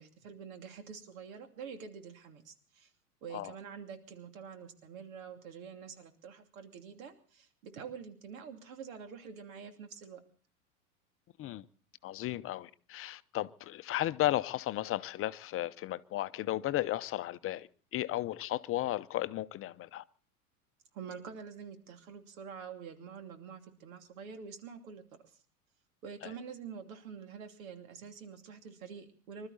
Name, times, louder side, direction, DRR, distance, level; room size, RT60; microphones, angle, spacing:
voice 1, 0.0-2.9 3.2-10.2 20.9-25.0 26.0-29.5, right 6 dB, 65° right, 2.9 m, -47 dB
voice 2, 12.0-20.0 26.2-26.3, left 15 dB, 30° left, 0.8 m, -34 dB
25.5 x 13.0 x 4.2 m
hypercardioid pair, 90°, 44 cm